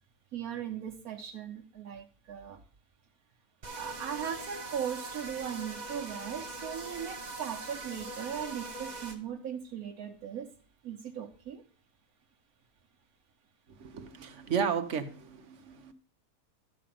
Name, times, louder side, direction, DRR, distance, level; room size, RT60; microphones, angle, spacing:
voice 1, 0.3-2.6 3.7-10.5 10.8-11.6, right 8 dB, 85° right, 1.4 m, -38 dB
sound 1, 3.6-9.2, right 2 dB, 30° right, 1.1 m, -42 dB
voice 2, 13.7-15.9, right 7 dB, 55° right, 1.4 m, -33 dB
12.0 x 5.2 x 7.6 m
omnidirectional pair, 1.5 m